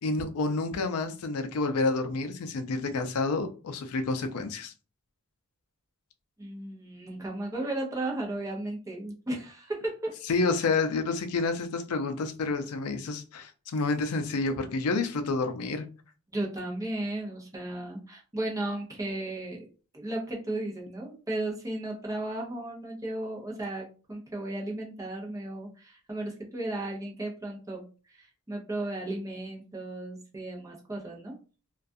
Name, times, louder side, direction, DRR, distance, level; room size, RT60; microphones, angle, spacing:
voice 1, 0.0-4.7 10.3-15.8, left 3 dB, 90° left, 0.4 m, -29 dB
voice 2, 6.4-10.1 16.3-19.7 19.9-31.3, right 1 dB, 15° right, 0.6 m, -35 dB
2.3 x 2.2 x 2.6 m
head